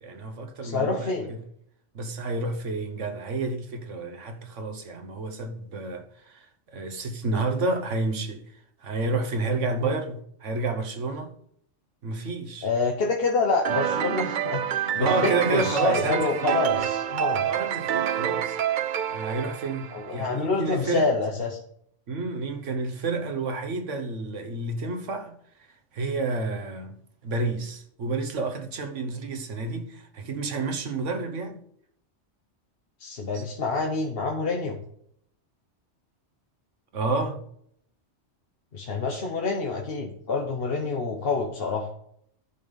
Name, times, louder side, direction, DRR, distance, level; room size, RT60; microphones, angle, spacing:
voice 1, 0.0-1.4 1.9-6.5 6.7-8.4 8.8-11.3 12.0-12.7 15.0-16.9 17.4-18.6 19.1-21.1 22.1-25.4 25.9-27.0 27.2-31.6 33.3-33.4 36.9-37.4 39.1-39.2, right 3 dB, 80° right, 1.5 m, -30 dB
voice 2, 0.6-1.3 9.8-10.0 12.6-17.5 19.9-21.6 33.0-34.8 38.7-41.9, left 4 dB, 55° left, 1.3 m, -27 dB
sound 1, 13.6-20.3, right 9 dB, 55° right, 0.5 m, -27 dB
11.0 x 5.5 x 5.4 m
omnidirectional pair, 1.2 m